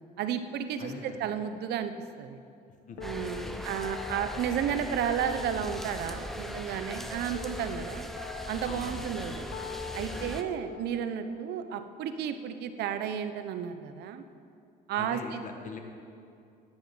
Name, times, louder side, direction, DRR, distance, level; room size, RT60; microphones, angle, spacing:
voice 1, 0.2-1.9 2.2-2.4 3.0-8.1 8.5-9.5 9.9-14.2 14.9-15.4, right 8 dB, 75° right, 10 dB, 0.9 m, -32 dB
voice 2, 0.8-1.3 2.9-3.0 3.4-3.7 8.6-9.1 10.1-10.5 15.0-15.8, left 5 dB, 50° left, 3 dB, 1.7 m, -43 dB
sound 1, 3.0-13.0, left 8 dB, 80° left, 0.7 m, -45 dB
sound 2, 3.0-10.4, equal, ahead, 0.7 m, -39 dB
10.5 x 9.1 x 7.6 m, 2.5 s
cardioid pair, 110°, 17 cm